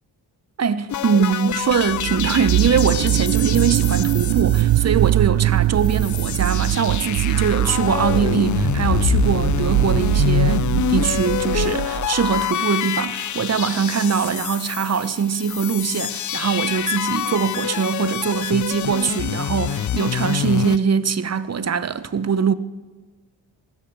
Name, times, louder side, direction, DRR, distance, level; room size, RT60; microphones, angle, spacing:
voice 1, 0.6-22.5, right 6 dB, 35° right, 0.9 m, -22 dB
sound 1, 0.9-5.3 5.6-5.7 5.8-20.8, left 11 dB, 40° left, 0.5 m, -26 dB
sound 2, 1.8-12.4, right 15 dB, 50° right, 0.5 m, -21 dB
15.5 x 12.5 x 6.4 m
hypercardioid pair, 50°, 47 cm